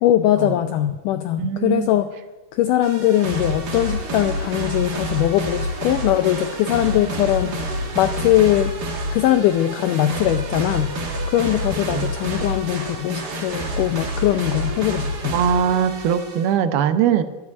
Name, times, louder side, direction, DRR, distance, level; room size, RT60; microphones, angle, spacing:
voice 1, 0.0-2.1 2.5-8.7 9.1-15.3, left 12 dB, 85° left, 8 dB, 1.8 m, -21 dB
voice 2, 1.4-1.9 6.9-7.2 11.9-12.1 15.3-17.2, right 8 dB, 80° right, 10 dB, 2.8 m, -21 dB
sound 1, 2.8-16.5, equal, 55° right, 1.1 m, -28 dB
13.0 x 8.3 x 9.5 m, 1.2 s
omnidirectional pair, 4.4 m